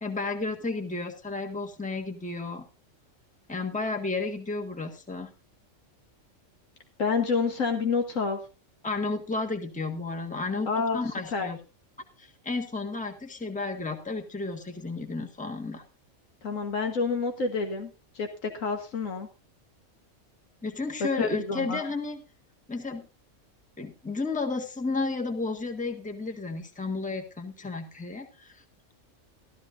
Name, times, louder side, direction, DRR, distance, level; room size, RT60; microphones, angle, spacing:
voice 1, 0.0-2.6 3.5-5.3 8.8-11.6 12.2-15.8 20.6-22.2 22.7-23.1 23.8-28.6, left 3 dB, 5° left, 3 dB, 1.5 m, -32 dB
voice 2, 7.0-8.4 10.7-11.0 11.3-11.5 16.4-19.3 21.2-21.8, left 4 dB, 90° left, 5 dB, 1.8 m, -28 dB
15.0 x 13.5 x 2.6 m, 0.30 s
omnidirectional pair, 1.3 m